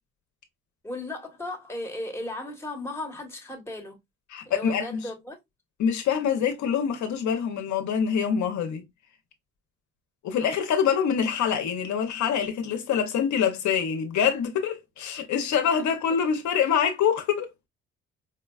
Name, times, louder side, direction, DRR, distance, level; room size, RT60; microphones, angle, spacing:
voice 1, 0.8-4.0 4.4-5.4 15.7-15.8, left 2 dB, 10° left, 1.2 m, -36 dB
voice 2, 4.3-5.1 5.8-8.9 10.2-17.5, left 7 dB, 70° left, 0.7 m, -25 dB
4.8 x 2.2 x 2.3 m
cardioid pair, 90°, 30 cm